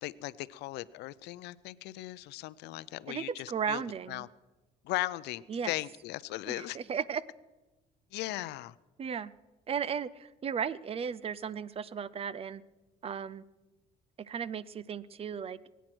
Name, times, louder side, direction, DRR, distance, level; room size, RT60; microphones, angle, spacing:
voice 1, 0.0-3.8 4.1-4.3 4.8-6.8 8.1-8.8, left 17 dB, 85° left, 0.5 m, -37 dB
voice 2, 3.1-4.2 5.5-5.7 6.5-7.2 9.0-9.3 9.7-12.6 13.0-13.4 14.2-15.6, right 7 dB, 35° right, 0.6 m, -35 dB
21.0 x 9.2 x 6.1 m
cardioid pair, 110°, 17 cm